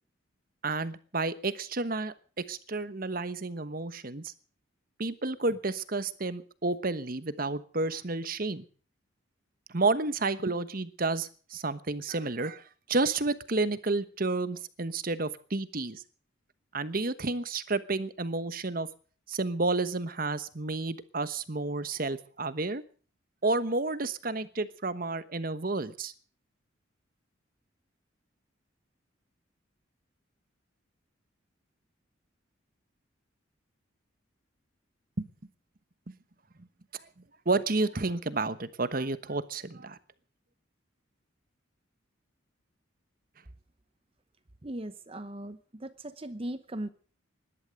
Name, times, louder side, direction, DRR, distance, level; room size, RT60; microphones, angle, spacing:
voice 1, 0.6-4.3 5.0-8.6 9.7-16.0 16.7-18.9 19.3-22.8 23.4-26.1 35.2-35.3 36.1-36.2 36.9-37.0 37.4-40.0, right 3 dB, 45° right, 14 dB, 1.1 m, -31 dB
voice 2, 44.6-46.9, right 1 dB, 30° right, 13 dB, 0.9 m, -38 dB
18.5 x 12.0 x 6.5 m, 0.42 s
head